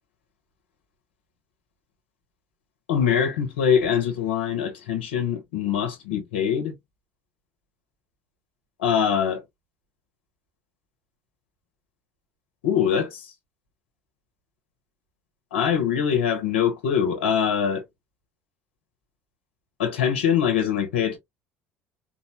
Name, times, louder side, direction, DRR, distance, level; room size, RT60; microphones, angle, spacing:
voice 1, 2.9-6.7 8.8-9.4 12.6-13.3 15.5-17.8 19.8-21.2, left 8 dB, 75° left, 1.5 m, -23 dB
4.6 x 2.9 x 2.8 m
hypercardioid pair, 65°, 6 cm